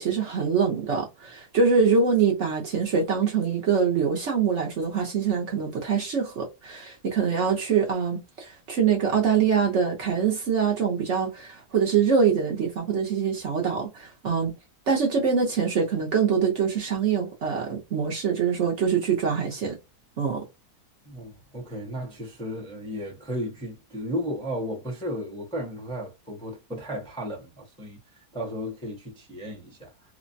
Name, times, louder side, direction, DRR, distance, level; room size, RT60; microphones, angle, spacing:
voice 1, 0.0-14.5 14.9-19.8 20.2-20.4, right 6 dB, 55° right, 0.9 m, -24 dB
voice 2, 21.1-28.0 28.3-29.9, equal, 5° left, 0.5 m, -34 dB
3.2 x 2.1 x 2.5 m
omnidirectional pair, 1.7 m